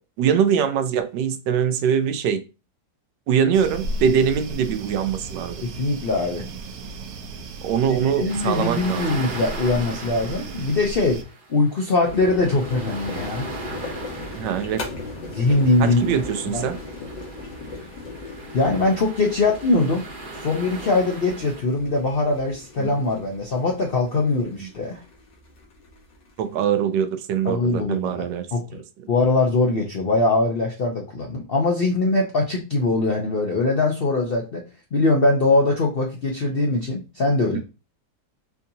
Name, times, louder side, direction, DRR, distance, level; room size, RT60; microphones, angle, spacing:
voice 1, 0.2-2.4 3.3-5.6 7.6-9.1 14.3-14.9 15.8-16.8 22.8-22.9 24.6-24.7 26.4-28.5 28.7-28.8 37.5-37.6, right 8 dB, 90° right, 1.3 m, -23 dB
sound 1, 3.5-11.2, right 2 dB, 70° right, 1.0 m, -35 dB
voice 2, 5.6-6.4 8.2-11.2 11.5-13.5 15.3-16.0 16.5-16.7 18.5-20.1 20.4-25.0 27.4-28.2 28.5-28.6 29.1-34.6 34.9-37.6, left 2 dB, 65° left, 0.5 m, -22 dB
sound 2, 8.3-21.6, right 3 dB, 40° right, 0.8 m, -39 dB
sound 3, 12.0-26.5, left 3 dB, 90° left, 1.8 m, -38 dB
4.5 x 2.7 x 2.7 m
omnidirectional pair, 1.8 m